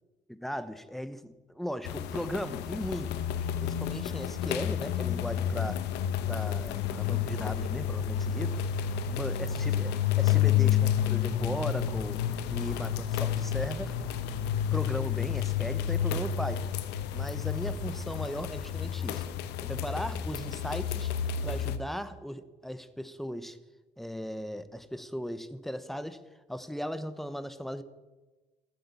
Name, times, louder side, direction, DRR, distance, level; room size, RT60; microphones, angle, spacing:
voice 1, 0.3-3.2 3.6-5.9 6.2-8.6 9.1-12.2 12.5-13.9 14.7-16.7 17.1-19.3 19.6-21.1 21.4-23.6 24.0-26.2 26.5-27.8, equal, ahead, 13 dB, 0.8 m, -37 dB
sound 1, 1.8-21.8, left 9 dB, 85° left, 0.9 m, -30 dB
sound 2, 6.1-18.7, right 2 dB, 25° left, 3.6 m, -51 dB
13.0 x 8.2 x 8.3 m, 1.2 s
cardioid pair, 110°, 17 cm